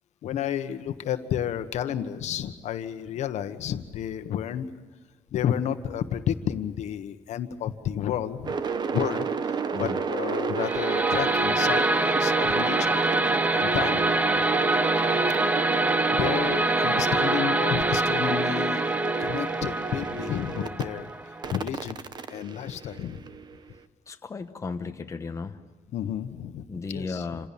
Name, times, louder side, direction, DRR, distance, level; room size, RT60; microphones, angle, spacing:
voice 1, 0.2-4.7 5.3-8.6 8.9-13.0 13.5-14.4 16.1-18.8 19.2-22.0 22.3-23.2 25.9-27.2, left 9 dB, 75° left, 9 dB, 1.3 m, -31 dB
sound 1, 8.4-20.8 21.4-23.6, right 5 dB, 35° right, 1.0 m, -30 dB
sound 2, 10.6-21.6, right 2 dB, 15° right, 0.8 m, -25 dB
voice 2, 24.1-25.6 26.7-27.5, left 4 dB, 25° left, 6 dB, 1.1 m, -34 dB
28.0 x 16.5 x 8.6 m, 1.4 s
cardioid pair, 145°, 12 cm